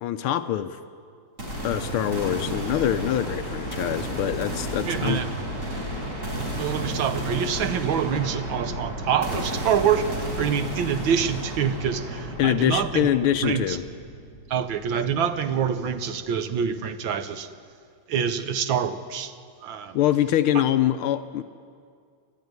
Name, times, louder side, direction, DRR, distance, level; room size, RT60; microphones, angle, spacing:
voice 1, 0.0-0.8 1.6-5.2 12.4-13.8 19.9-21.4, left 11 dB, 80° left, 11 dB, 1.6 m, -24 dB
sound 1, 1.4-15.3, right 1 dB, 35° right, 4.8 m, -32 dB
voice 2, 4.9-5.3 6.6-13.1 13.4-13.8 14.5-17.5 18.1-19.3 19.6-20.0 20.6-20.7, right 8 dB, 65° right, 9 dB, 1.7 m, -26 dB
28.0 x 12.5 x 9.6 m, 2.2 s
omnidirectional pair, 2.4 m